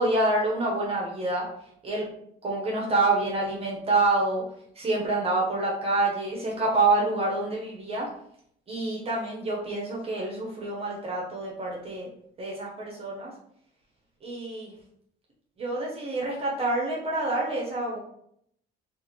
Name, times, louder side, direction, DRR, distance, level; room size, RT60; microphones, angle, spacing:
voice 1, 0.0-1.4 1.8-2.1 2.4-4.4 4.8-8.1 8.7-12.1 12.4-13.3 14.2-14.7 15.6-18.0, right 2 dB, 35° right, -3 dB, 0.9 m, -27 dB
2.7 x 2.4 x 3.2 m, 0.69 s
cardioid pair, 110°, 17 cm